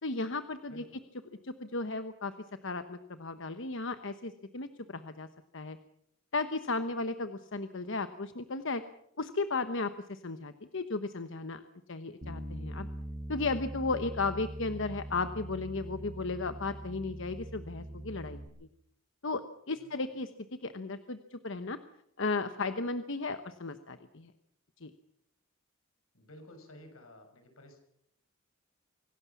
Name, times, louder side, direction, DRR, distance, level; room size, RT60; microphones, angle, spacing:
voice 1, 0.0-0.8 1.4-2.3 2.6-5.3 5.5-5.8 6.3-8.8 9.2-11.6 11.9-12.9 13.3-18.5 19.2-19.4 19.7-20.3 20.6-21.8 22.2-24.3 24.8-24.9, left 3 dB, 65° left, 10 dB, 1.1 m, -35 dB
voice 2, 0.7-1.1 19.8-20.0 26.1-27.8, left 1 dB, 85° left, 6 dB, 6.2 m, -53 dB
Bass guitar, 12.2-18.5, right 1 dB, 40° right, 6.7 m, -42 dB
25.0 x 18.0 x 7.2 m, 0.74 s
head